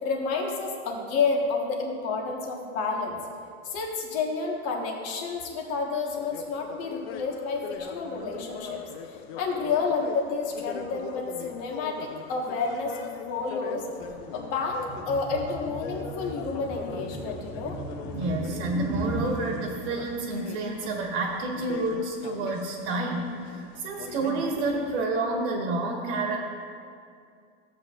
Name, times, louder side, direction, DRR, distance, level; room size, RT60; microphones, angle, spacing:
voice 1, 0.0-3.2 3.6-8.8 9.1-12.9 13.3-13.8 14.3-14.8 15.0-17.8, left 4 dB, 40° left, 1 dB, 1.5 m, -30 dB
sound 1, 6.1-25.0, left 7 dB, 60° left, 0.7 m, -42 dB
sound 2, 14.0-19.3, right 1 dB, 5° right, 0.9 m, -36 dB
voice 2, 18.1-26.4, right 2 dB, 65° right, 0 dB, 1.5 m, -29 dB
14.5 x 8.0 x 2.5 m, 2.3 s
supercardioid pair, 155°, 36 cm